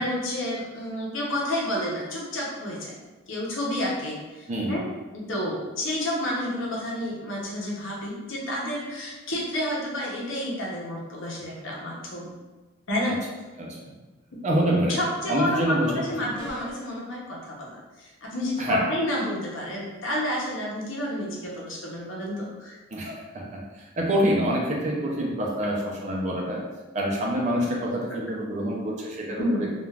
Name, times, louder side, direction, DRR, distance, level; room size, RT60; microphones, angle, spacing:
voice 1, 0.0-3.0 3.3-4.8 5.1-12.3 12.9-13.2 14.9-22.8 28.1-28.2 29.4-29.7, left 1 dB, 85° left, -4 dB, 0.8 m, -30 dB
voice 2, 13.6-13.9 14.4-15.0 15.3-15.9 16.2-16.4 18.6-18.8 22.9-23.6 24.0-26.6 26.9-29.7, right 1 dB, 35° right, -2 dB, 0.5 m, -26 dB
sound 1, 16.4-16.9, equal, 30° left, 0.5 m, -40 dB
3.3 x 2.4 x 2.3 m, 1.2 s
head